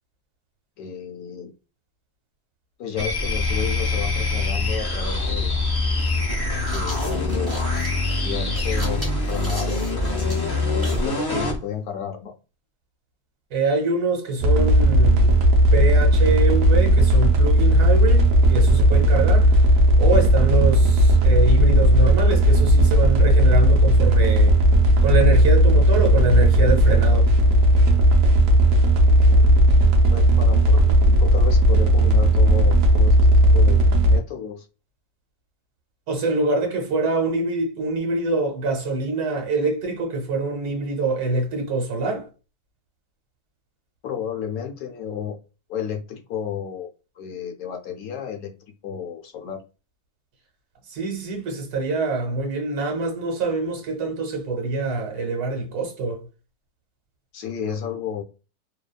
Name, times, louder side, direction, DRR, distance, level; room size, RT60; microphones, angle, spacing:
voice 1, 0.8-1.5 2.8-5.5 6.6-7.6 8.1-10.4 10.7-12.3 29.3-29.6 30.1-34.7 44.0-45.4 45.7-46.9 47.2-48.5 48.8-49.6 57.3-58.2, left 8 dB, 75° left, 1.0 m, -32 dB
sound 1, 3.0-11.6, left 2 dB, 30° left, 0.4 m, -24 dB
sound 2, 5.3-5.4 6.4-11.1, equal, 10° right, 1.2 m, -38 dB
voice 2, 13.5-15.4 15.7-19.5 20.0-24.5 25.0-27.3 36.1-42.3 50.9-56.2, right 3 dB, 85° right, 1.4 m, -25 dB
sound 3, 14.4-34.2, right 1 dB, 65° right, 1.0 m, -15 dB
2.8 x 2.3 x 2.2 m
omnidirectional pair, 1.6 m